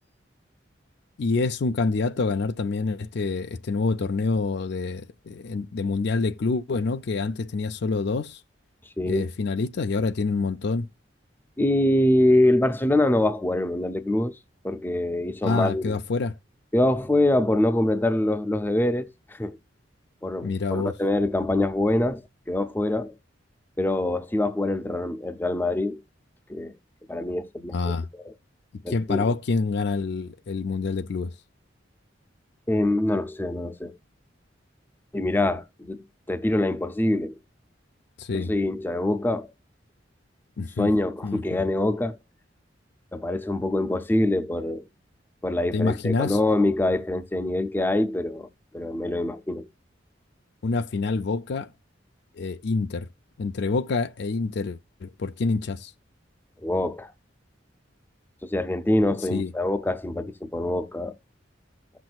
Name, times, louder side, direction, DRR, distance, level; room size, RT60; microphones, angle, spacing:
voice 1, 1.2-8.4 9.0-10.9 15.4-16.4 20.4-20.9 27.7-28.1 28.7-31.3 38.2-38.5 40.6-40.9 41.2-41.7 45.7-46.4 50.6-51.7 52.4-53.1 53.4-55.9 59.3-59.5, left 3 dB, 65° left, 0.5 m, -27 dB
voice 2, 9.0-9.3 11.6-14.3 14.6-16.0 16.7-19.6 20.2-22.2 22.5-23.1 23.8-26.0 26.5-26.7 27.1-27.9 28.2-28.3 28.8-29.3 32.7-34.0 35.1-36.0 36.3-37.3 38.3-39.5 40.8-42.2 43.1-44.8 45.4-48.5 48.7-49.7 56.6-57.1 58.4-61.1, left 1 dB, 10° left, 0.5 m, -24 dB
15.0 x 6.1 x 2.3 m
head